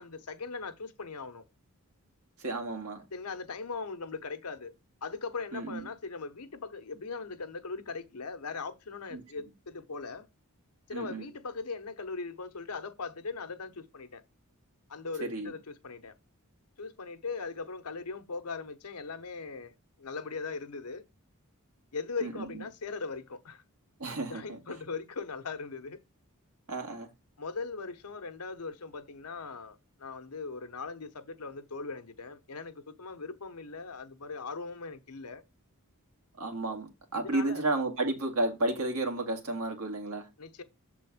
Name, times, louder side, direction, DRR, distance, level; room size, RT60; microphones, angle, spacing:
voice 1, 0.0-1.4 3.1-4.7 5.0-10.3 10.9-14.2 14.9-16.1 16.8-21.0 21.9-23.6 24.3-26.0 27.4-35.4 37.1-37.6 40.4-40.6, left 4 dB, 90° left, 1.0 m, -39 dB
voice 2, 2.4-3.0 5.5-5.8 9.1-9.2 10.9-11.3 15.2-15.5 22.2-22.6 24.0-24.6 26.7-27.1 36.4-40.3, right 2 dB, 75° right, 2.0 m, -32 dB
7.0 x 3.8 x 5.0 m
head